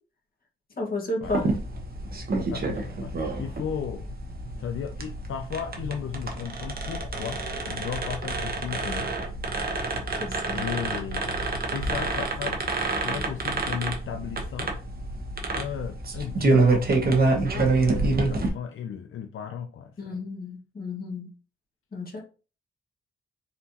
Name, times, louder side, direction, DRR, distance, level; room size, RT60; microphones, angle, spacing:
voice 1, 0.8-1.5 10.2-10.6 20.0-21.3 21.9-22.2, left 2 dB, 45° left, 1.6 m, -32 dB
sound 1, 1.2-18.5, right 3 dB, 45° right, 1.0 m, -27 dB
voice 2, 2.5-4.1 4.6-9.1 10.1-11.4 11.7-14.8 15.5-20.2, left 8 dB, 75° left, 0.4 m, -35 dB
4.1 x 3.9 x 2.8 m
wide cardioid pair, 125°, 21 cm